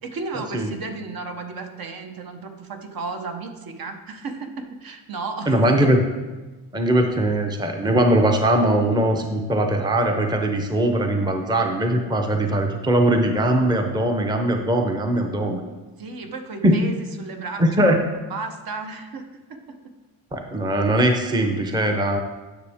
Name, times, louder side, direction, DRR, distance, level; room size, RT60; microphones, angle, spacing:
voice 1, 0.0-5.9 16.0-17.9 18.3-19.9, right 3 dB, 55° right, 5 dB, 0.9 m, -34 dB
voice 2, 5.5-6.0 6.7-15.6 16.6-16.8 17.6-18.0 20.3-22.2, right 1 dB, 10° right, 4 dB, 0.7 m, -20 dB
9.8 x 6.2 x 3.5 m, 1.2 s
cardioid pair, 120°, 43 cm